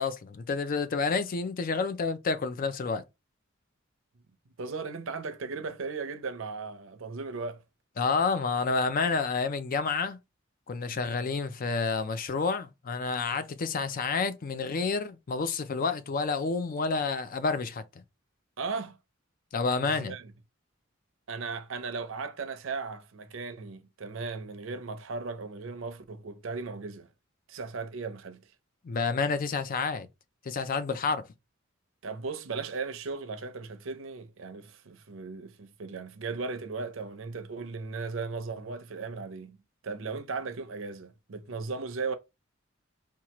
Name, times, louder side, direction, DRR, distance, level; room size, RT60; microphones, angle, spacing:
voice 1, 0.0-3.0 8.0-10.2 10.7-17.8 19.5-20.1 28.8-30.1 30.5-31.2, left 4 dB, 45° left, 0.4 m, -29 dB
voice 2, 4.6-7.6 18.6-19.0 19.8-20.3 21.3-27.1 27.5-28.4 32.0-39.6 39.8-42.1, right 4 dB, 75° right, 0.6 m, -37 dB
4.5 x 2.4 x 2.9 m
head